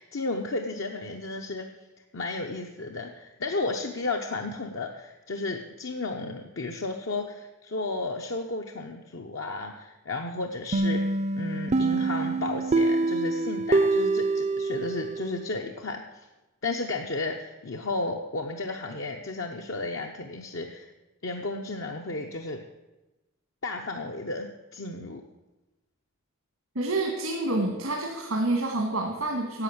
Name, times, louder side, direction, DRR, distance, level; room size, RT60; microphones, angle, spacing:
voice 1, 0.0-1.7 2.1-11.0 11.4-16.3 16.6-20.9 21.2-22.6 23.6-25.2, left 2 dB, 65° left, 2 dB, 0.8 m, -33 dB
sound 1, 10.7-15.4, right 3 dB, 30° right, 0.5 m, -25 dB
voice 2, 26.7-29.6, right 2 dB, 85° right, 1 dB, 1.7 m, -28 dB
11.0 x 7.8 x 7.9 m, 1.1 s
head